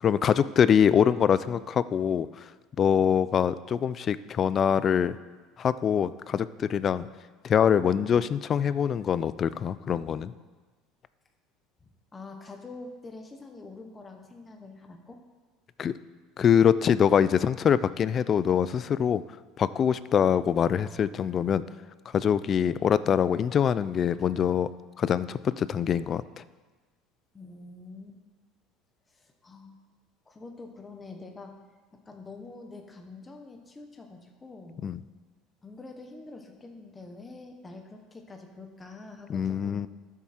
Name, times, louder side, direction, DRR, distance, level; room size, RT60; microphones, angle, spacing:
voice 1, 0.0-2.3 2.8-5.2 5.6-7.1 7.4-10.3 15.8-15.9 16.4-19.2 19.6-21.6 22.1-24.7 25.0-26.2 34.8-35.0 39.3-39.9, left 8 dB, 30° left, 16 dB, 0.3 m, -24 dB
voice 2, 11.8-15.2 27.3-28.2 29.1-29.8 30.3-31.5 32.1-34.8 35.6-39.8, left 3 dB, 15° left, 4 dB, 1.0 m, -45 dB
13.0 x 7.3 x 4.3 m, 1.3 s
cardioid pair, 155°, 0 cm